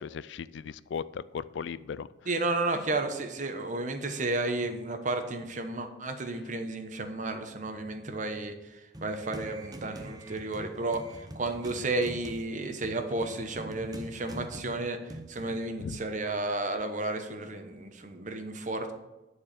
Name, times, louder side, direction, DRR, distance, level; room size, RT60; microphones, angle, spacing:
voice 1, 0.0-2.1 15.8-16.0, left 6 dB, 70° left, 18 dB, 0.3 m, -37 dB
voice 2, 2.3-18.9, right 2 dB, 40° right, 6 dB, 1.0 m, -32 dB
sound 1, 8.9-15.7, right 1 dB, 20° right, 0.7 m, -45 dB
10.5 x 4.7 x 6.6 m, 1.1 s
head